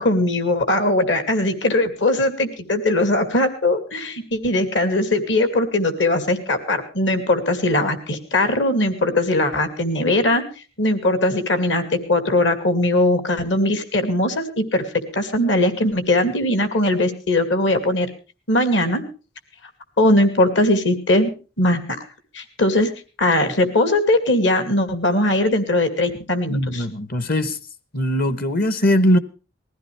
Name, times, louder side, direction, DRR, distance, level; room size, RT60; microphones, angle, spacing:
voice 1, 0.0-10.4 10.8-11.8 12.1-14.8 15.1-18.1 18.5-19.0 20.0-21.3 21.6-21.8 22.3-22.9 23.2-26.9, left 1 dB, 70° left, 2.4 m, -20 dB
voice 2, 26.5-27.6 27.9-29.2, equal, 55° left, 1.1 m, -20 dB
21.0 x 15.0 x 3.3 m
head